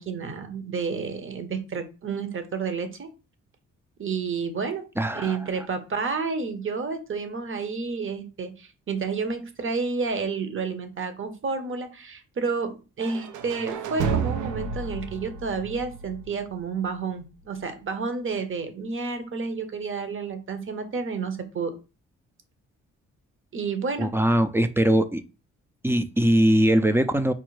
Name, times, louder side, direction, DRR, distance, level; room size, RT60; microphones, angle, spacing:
voice 1, 0.0-3.1 4.0-4.8 5.1-21.7 23.5-24.1, right 4 dB, 45° right, 0.8 m, -30 dB
voice 2, 5.0-5.4 24.0-25.2 25.8-27.3, right 1 dB, 10° right, 0.3 m, -21 dB
sound 1, 13.0-16.9, right 6 dB, 80° right, 0.5 m, -31 dB
4.6 x 2.1 x 3.1 m
cardioid pair, 70°, 30 cm